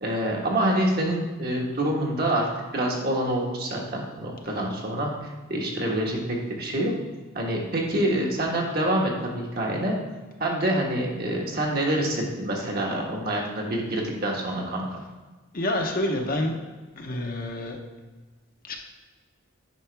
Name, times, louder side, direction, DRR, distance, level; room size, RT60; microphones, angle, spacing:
voice 1, 0.0-6.9 7.3-10.0 10.4-15.0, right 1 dB, 45° right, -1 dB, 1.5 m, -26 dB
voice 2, 15.5-16.5 17.0-17.8 18.6-18.8, left 1 dB, 40° left, 2 dB, 0.9 m, -27 dB
9.0 x 5.7 x 3.5 m, 1.3 s
head